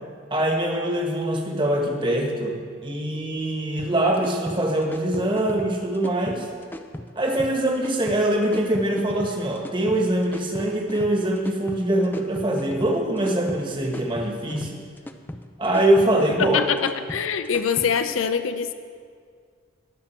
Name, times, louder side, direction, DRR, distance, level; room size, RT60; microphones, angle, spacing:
voice 1, 0.3-6.5 7.1-14.8 15.6-16.6, right 1 dB, 25° right, 1 dB, 1.4 m, -23 dB
sound 1, 3.8-18.2, left 1 dB, 10° left, 0.4 m, -38 dB
voice 2, 16.4-18.7, left 7 dB, 85° left, 10 dB, 0.5 m, -24 dB
21.0 x 7.6 x 4.4 m, 2.1 s
head